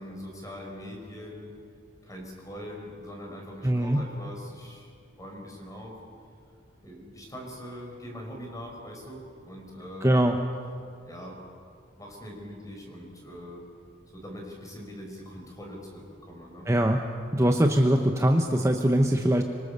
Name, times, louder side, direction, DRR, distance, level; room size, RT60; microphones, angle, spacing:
voice 1, 0.0-1.5 2.0-4.9 5.2-6.0 6.8-10.2 11.0-11.4 12.0-13.6 14.1-16.7 17.4-17.6, equal, 20° left, 0 dB, 5.2 m, -42 dB
voice 2, 3.6-4.0 10.0-10.3 16.7-17.0 17.3-19.4, right 1 dB, 15° right, 3 dB, 1.0 m, -22 dB
25.0 x 24.5 x 6.9 m, 2.4 s
head